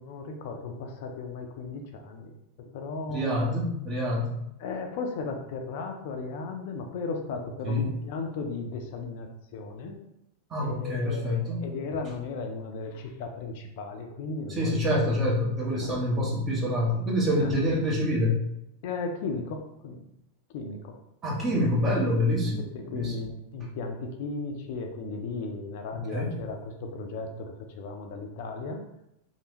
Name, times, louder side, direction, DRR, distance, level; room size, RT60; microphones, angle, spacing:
voice 1, 0.0-2.3 2.7-3.3 4.6-9.3 9.5-10.0 10.6-15.1 15.7-16.1 17.4-17.5 18.8-20.1 20.5-20.9 21.5-21.7 22.7-28.8, left 3 dB, 50° left, 4 dB, 0.4 m, -36 dB
voice 2, 3.1-4.4 7.6-7.8 10.5-11.6 14.5-18.4 21.2-22.6 22.9-23.1 26.1-26.3, left 1 dB, 25° right, -3 dB, 1.0 m, -26 dB
3.3 x 2.4 x 2.9 m, 0.82 s
figure-of-eight pair, 90°, 0 cm